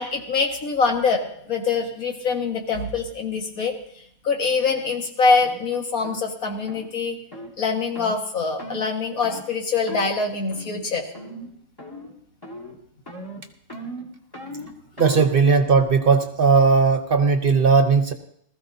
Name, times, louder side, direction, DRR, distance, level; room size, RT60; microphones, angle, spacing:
voice 1, 0.0-3.8 4.2-7.2 7.6-11.1, left 4 dB, 75° left, 2 dB, 2.1 m, -24 dB
sound 1, 5.4-5.6 6.0-6.3 6.7-6.9 7.3-7.5 8.0-8.2 8.6-8.9 9.2-9.5 9.9-10.1 10.5-10.9 11.1-11.5 11.8-12.2 12.4-12.8 13.1-15.4, equal, 15° left, 1.8 m, -37 dB
voice 2, 15.0-18.1, right 5 dB, 45° right, 7 dB, 0.9 m, -17 dB
20.0 x 14.0 x 2.7 m, 0.68 s
omnidirectional pair, 1.5 m